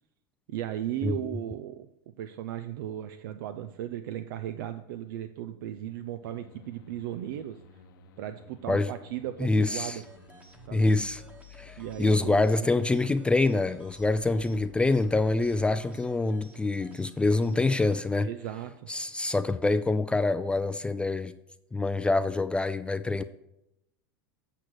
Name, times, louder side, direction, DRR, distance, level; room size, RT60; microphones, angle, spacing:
voice 1, 0.5-1.9 2.2-7.6 8.2-10.0 10.7-10.9 11.8-12.5 18.2-18.9, right 12 dB, 75° right, 0.6 m, -36 dB
sound 1, 6.2-15.9, left 7 dB, 80° left, 1.1 m, -53 dB
voice 2, 9.4-10.0 10.7-11.2 11.6-18.3 18.9-21.3 21.7-23.2, left 2 dB, 10° left, 0.4 m, -26 dB
sound 2, 9.7-18.0, right 2 dB, 15° right, 1.2 m, -55 dB
8.3 x 6.2 x 6.4 m
supercardioid pair, 125°, 11 cm